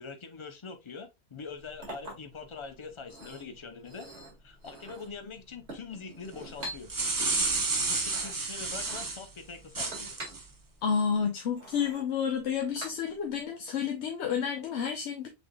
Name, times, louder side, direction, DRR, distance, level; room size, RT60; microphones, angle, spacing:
voice 1, 0.0-4.1 4.4-6.9 7.2-10.2, left 4 dB, 35° left, 0.6 m, -44 dB
Chink clink, 1.4-13.4, right 1 dB, 65° right, 2.1 m, -47 dB
sound 1, 6.6-9.2 9.7-10.4, right 3 dB, 25° right, 0.4 m, -30 dB
voice 2, 10.8-15.3, left 7 dB, 80° left, 1.0 m, -30 dB
6.0 x 3.5 x 2.2 m
omnidirectional pair, 1.2 m